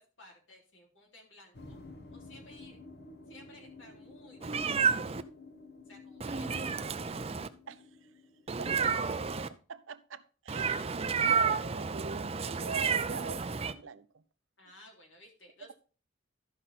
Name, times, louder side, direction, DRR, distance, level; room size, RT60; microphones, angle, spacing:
voice 1, 0.0-1.8 2.1-2.8 3.3-5.0 5.8-6.9 14.6-15.7, left 1 dB, 65° left, 3.3 m, -56 dB
sound 1, 1.5-8.5, left 3 dB, 50° left, 1.2 m, -52 dB
Meow, 4.4-5.2 6.2-7.5 8.5-9.5 10.5-13.7, right 6 dB, 30° right, 0.5 m, -31 dB
voice 2, 8.6-9.1 9.7-14.2, right 4 dB, 70° right, 0.7 m, -43 dB
13.0 x 5.6 x 4.2 m
head